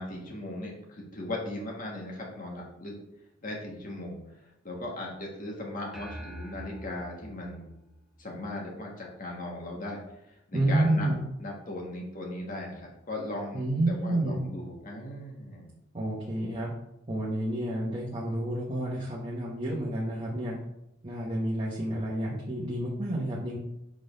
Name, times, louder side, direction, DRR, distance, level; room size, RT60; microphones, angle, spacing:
voice 1, 0.0-2.9 3.4-4.2 4.6-7.6 8.2-10.0 10.5-11.1 11.4-15.7, left 1 dB, 45° left, -1 dB, 1.5 m, -38 dB
sound 1, 5.9-8.6, right 1 dB, ahead, 0.7 m, -45 dB
voice 2, 10.5-11.2 13.5-14.4 15.9-16.7 17.1-20.5 21.0-23.6, right 1 dB, 30° right, -5 dB, 1.0 m, -29 dB
5.2 x 3.9 x 5.2 m, 0.86 s
head